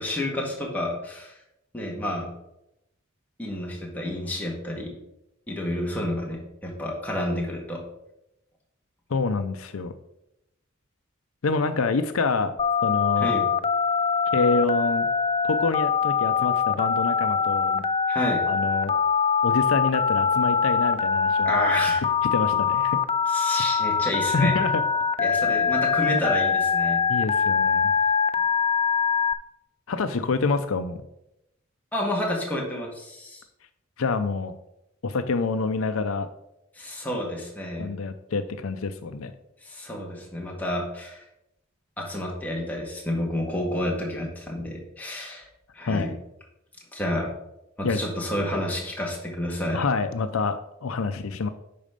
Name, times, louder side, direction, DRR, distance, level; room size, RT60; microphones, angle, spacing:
voice 1, 0.0-1.3 1.7-2.3 3.4-4.9 5.5-7.8 13.2-13.5 18.1-18.4 21.4-22.0 23.3-24.6 25.2-27.0 31.9-33.4 36.8-37.9 39.6-41.2 42.0-45.5 45.7-46.1 46.9-47.3 47.8-49.8, left 1 dB, 10° left, -2 dB, 1.9 m, -30 dB
voice 2, 9.1-9.9 11.4-12.6 12.8-13.3 14.3-15.1 15.4-17.8 18.5-18.9 19.4-21.6 22.3-23.0 24.3-24.8 27.1-27.9 29.9-31.0 34.0-34.5 35.0-36.3 37.8-39.3 45.8-46.2 47.8-48.0 49.7-51.5, left 4 dB, 85° left, 10 dB, 0.6 m, -26 dB
Telephone, 12.6-29.3, left 6 dB, 30° left, 0.4 m, -23 dB
10.5 x 4.3 x 5.1 m, 0.86 s
head